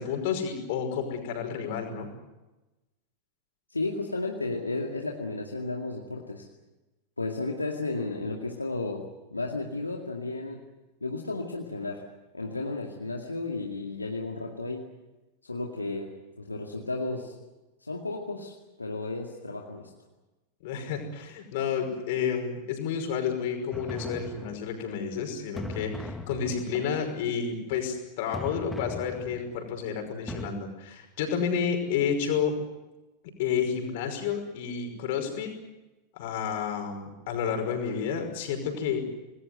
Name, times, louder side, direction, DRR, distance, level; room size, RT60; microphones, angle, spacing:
voice 1, 0.0-2.1 20.6-32.6 33.4-35.5 36.1-39.0, left 7 dB, 50° left, 5 dB, 5.6 m, -30 dB
voice 2, 3.7-6.5 7.2-10.6 11.0-12.0 12.3-14.8 15.4-17.3 17.8-18.5 18.8-19.9, left 2 dB, 80° left, 0 dB, 2.2 m, -33 dB
sound 1, 23.7-24.9 25.6-26.9 28.3-29.7 30.3-30.5, left 1 dB, 5° left, 1.6 m, -39 dB
27.0 x 20.0 x 7.9 m, 1.1 s
figure-of-eight pair, 90°, 0 cm